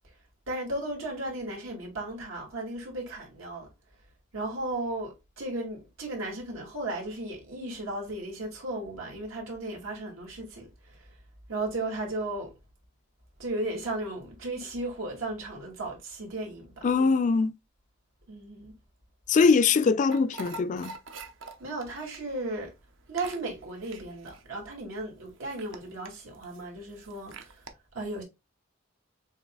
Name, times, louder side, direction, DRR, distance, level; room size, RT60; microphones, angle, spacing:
voice 1, 0.5-3.7 4.3-11.1 11.5-12.5 13.4-16.9 18.3-18.7 21.6-22.7 23.1-27.6 27.9-28.2, right 2 dB, 90° right, 2.3 m, -35 dB
voice 2, 16.8-17.5 19.3-20.9, left 4 dB, 40° left, 0.3 m, -22 dB
sound 1, 20.1-27.7, right 3 dB, 65° right, 0.7 m, -46 dB
7.1 x 2.9 x 2.2 m
head